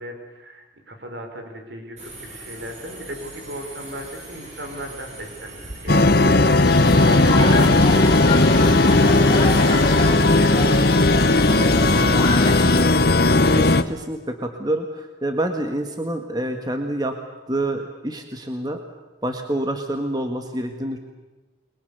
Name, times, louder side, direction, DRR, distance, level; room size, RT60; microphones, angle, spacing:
voice 1, 0.0-6.7 7.1-12.3, right 1 dB, 65° right, 5 dB, 4.8 m, -36 dB
Subway metro underground, 2.0-11.4, right 1 dB, 35° right, 7.0 m, -42 dB
sound 1, 5.9-13.8, left 2 dB, 55° left, 1.1 m, -16 dB
sound 2, 6.6-12.8, left 2 dB, 25° left, 4.7 m, -26 dB
voice 2, 13.5-17.1 17.5-18.8 19.2-21.0, right 1 dB, 20° right, 5 dB, 1.8 m, -27 dB
29.5 x 22.5 x 6.9 m, 1.1 s
head